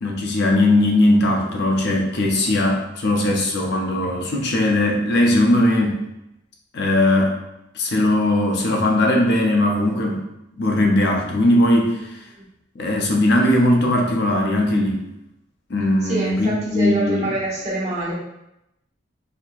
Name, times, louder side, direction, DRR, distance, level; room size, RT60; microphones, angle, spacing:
voice 1, 0.0-6.0 6.7-7.4 7.7-10.2 10.6-12.2 12.8-15.0 15.7-17.3, left 1 dB, 55° left, 0 dB, 0.5 m, -19 dB
voice 2, 16.0-18.1, right 2 dB, 35° right, -8 dB, 1.4 m, -25 dB
4.3 x 2.7 x 2.4 m, 0.86 s
head